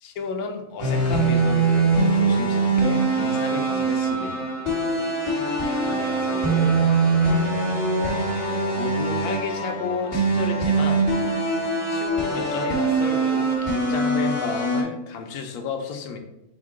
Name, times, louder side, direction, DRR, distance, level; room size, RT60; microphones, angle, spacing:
voice 1, 0.0-4.5 5.8-7.2 8.8-11.1 11.9-16.2, left 5 dB, 85° left, 4 dB, 1.1 m, -32 dB
sound 1, 0.8-14.8, right 3 dB, 50° left, 1.7 m, -22 dB
4.6 x 2.1 x 4.7 m, 0.89 s
omnidirectional pair, 1.6 m